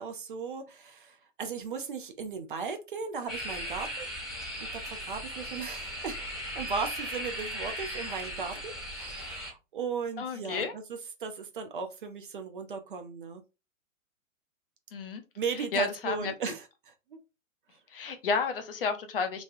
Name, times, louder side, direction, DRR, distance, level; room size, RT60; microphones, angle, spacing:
voice 1, 0.0-4.1 4.6-6.2 6.5-10.8 11.2-13.4 15.4-17.2, right 5 dB, 40° right, 6 dB, 0.5 m, -37 dB
sound 1, 3.3-9.5, equal, ahead, 0.9 m, -37 dB
voice 2, 10.2-10.7 14.9-15.2 15.5-16.3 17.9-19.4, left 4 dB, 45° left, 7 dB, 0.6 m, -31 dB
3.1 x 2.2 x 2.6 m, 0.28 s
figure-of-eight pair, 120°, 41 cm